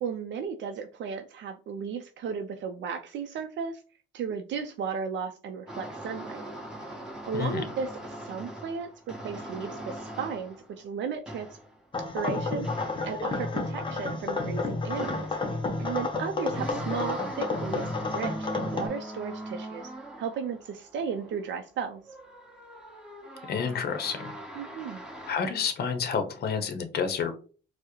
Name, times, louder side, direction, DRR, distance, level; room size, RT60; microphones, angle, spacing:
voice 1, 0.0-3.8 4.1-6.4 7.2-11.5 12.1-19.9 20.2-22.0 24.5-25.0, right 6 dB, 70° right, 5 dB, 0.4 m, -35 dB
sound 1, 5.7-10.8 11.3-11.8 12.6-13.4 15.0-15.7 16.5-21.7 22.0-25.4, right 1 dB, 5° right, 1.1 m, -41 dB
sound 2, 11.9-18.9, left 3 dB, 25° left, 0.8 m, -31 dB
voice 2, 23.5-24.3 25.3-27.4, left 6 dB, 55° left, 7 dB, 0.7 m, -29 dB
4.4 x 2.0 x 3.0 m, 0.38 s
cardioid pair, 90°, 20 cm